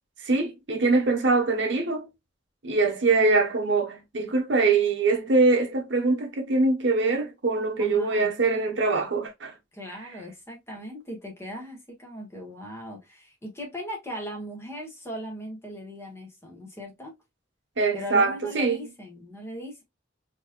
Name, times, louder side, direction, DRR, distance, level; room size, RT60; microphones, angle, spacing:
voice 1, 0.2-2.1 2.6-9.5 17.8-18.8, right 3 dB, 70° right, 1.1 m, -23 dB
voice 2, 7.8-8.3 9.7-17.1 17.9-19.8, equal, 15° left, 1.4 m, -38 dB
4.5 x 3.0 x 2.3 m
head